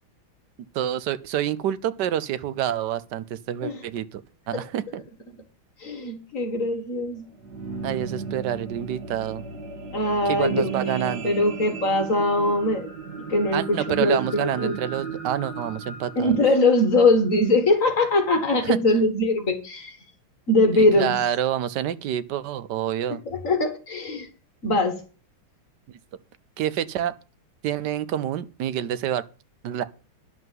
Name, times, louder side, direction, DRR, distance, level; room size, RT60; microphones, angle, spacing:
voice 1, 0.7-4.2 4.5-5.0 7.8-9.4 10.2-11.4 13.5-16.4 18.6-18.8 20.7-23.2 26.6-27.1 27.6-29.2 29.6-29.8, right 11 dB, 65° right, 1.1 m, -27 dB
voice 2, 5.8-7.3 9.9-12.9 13.3-14.8 16.2-20.0 20.5-21.2 23.3-24.3 24.6-25.0, left 2 dB, 40° left, 1.9 m, -22 dB
ab emptywarehouse atmos, 7.2-17.7 18.3-18.4, right 4 dB, 50° right, 2.2 m, -36 dB
11.0 x 5.7 x 7.7 m
omnidirectional pair, 2.3 m